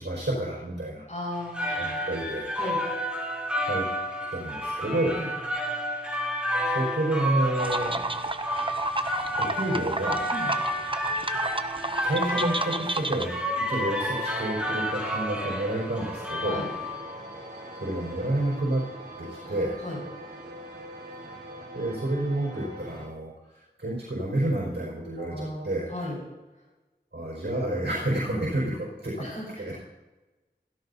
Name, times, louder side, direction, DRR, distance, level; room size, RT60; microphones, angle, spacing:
voice 1, 0.0-1.1 1.8-2.5 3.7-3.8 4.3-5.2 6.7-8.0 9.4-10.3 12.0-16.6 17.8-18.8 19.2-19.8 21.7-23.3 23.8-25.9 27.1-29.3 29.6-29.7, right 1 dB, 75° right, -6 dB, 4.9 m, -29 dB
voice 2, 1.1-2.0 2.6-2.8 5.1-5.3 10.3-10.5 16.4-16.7 19.4-20.0 25.2-26.2 29.2-29.5, left 1 dB, 40° left, -4 dB, 5.2 m, -36 dB
sound 1, 1.3-17.2, equal, 5° right, 3.5 m, -31 dB
sound 2, 7.6-13.3, right 2 dB, 30° right, 0.7 m, -31 dB
sound 3, 14.0-23.1, right 1 dB, 55° right, 3.7 m, -42 dB
16.5 x 16.0 x 2.8 m, 1.1 s
wide cardioid pair, 50°, 18 cm